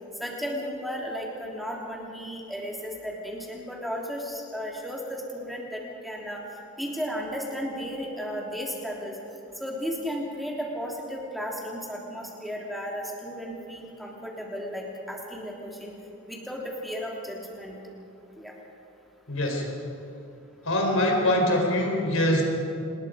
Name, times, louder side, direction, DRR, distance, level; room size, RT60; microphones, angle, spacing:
voice 1, 0.2-6.4 6.8-9.2 9.6-15.9 16.3-17.8 18.4-18.5, equal, ahead, -2 dB, 3.2 m, -34 dB
voice 2, 19.3-19.6 20.6-22.4, left 1 dB, 70° left, 0 dB, 4.6 m, -23 dB
27.5 x 20.0 x 5.2 m, 2.7 s
head